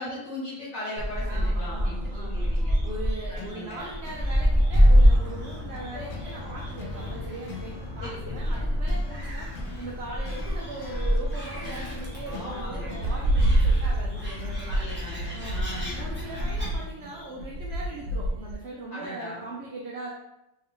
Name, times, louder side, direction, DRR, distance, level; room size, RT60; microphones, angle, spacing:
voice 1, 0.0-2.7 3.3-3.8 8.0-8.7 12.3-13.0 14.7-16.0 18.9-19.5, equal, 60° left, -8 dB, 1.5 m, -38 dB
Gull seagull, 1.0-16.7, equal, 10° right, 0.8 m, -27 dB
voice 2, 1.3-2.5 2.8-9.5 9.8-14.8 15.3-15.6 16.0-20.1, right 2 dB, 60° right, -3 dB, 0.8 m, -40 dB
sound 1, 2.2-16.9, left 5 dB, 80° left, 1.0 m, -47 dB
sound 2, 2.4-5.9 6.2-9.9 10.2-18.5, right 1 dB, 80° right, 1.1 m, -30 dB
3.2 x 2.7 x 3.6 m, 0.90 s
omnidirectional pair, 1.4 m